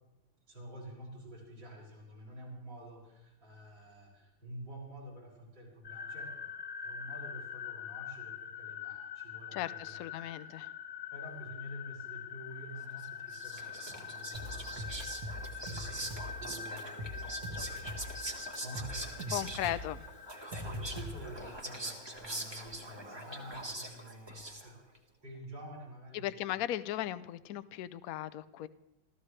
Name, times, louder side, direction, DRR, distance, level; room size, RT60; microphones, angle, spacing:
voice 1, 0.5-6.5 6.8-10.2 11.1-17.4 18.2-19.9 20.5-26.4, right 1 dB, 70° right, -3 dB, 7.0 m, -49 dB
sound 1, 5.8-23.8, left 7 dB, 40° left, 1.1 m, -45 dB
voice 2, 9.5-10.7 19.3-20.1 26.1-28.7, left 13 dB, 70° left, 14 dB, 0.8 m, -37 dB
Whispering, 13.0-25.0, right 1 dB, 15° right, 1.3 m, -43 dB
sound 2, 14.3-16.5 16.8-18.2 18.5-21.5, equal, 50° right, 2.2 m, -42 dB
27.5 x 14.5 x 3.3 m, 0.93 s
omnidirectional pair, 2.2 m